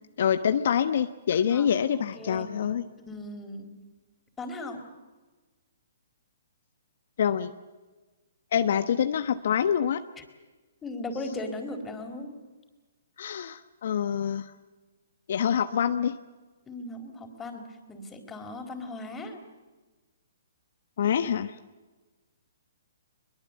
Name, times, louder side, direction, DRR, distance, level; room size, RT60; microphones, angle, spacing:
voice 1, 0.2-2.8 7.2-7.5 8.5-10.0 13.2-14.5 15.3-16.2 21.0-21.5, left 8 dB, 60° left, 9 dB, 1.1 m, -26 dB
voice 2, 1.3-2.5 3.1-3.7 4.4-4.8 10.8-12.3 16.7-17.6 17.9-19.4, left 2 dB, 10° left, 4 dB, 4.5 m, -38 dB
23.0 x 22.5 x 8.4 m, 1.2 s
hypercardioid pair, 135°, 0 cm